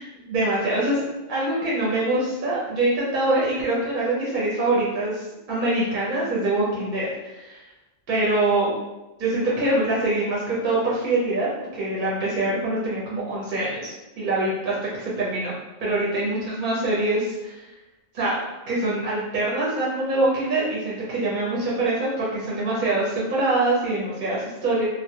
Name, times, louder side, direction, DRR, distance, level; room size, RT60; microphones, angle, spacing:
voice 1, 0.3-7.6 8.1-8.7 9.2-11.5 11.7-15.5 15.8-17.7 18.1-18.4 18.7-24.9, right 2 dB, 50° right, -6 dB, 0.7 m, -24 dB
2.1 x 2.0 x 2.8 m, 1.0 s
omnidirectional pair, 1.2 m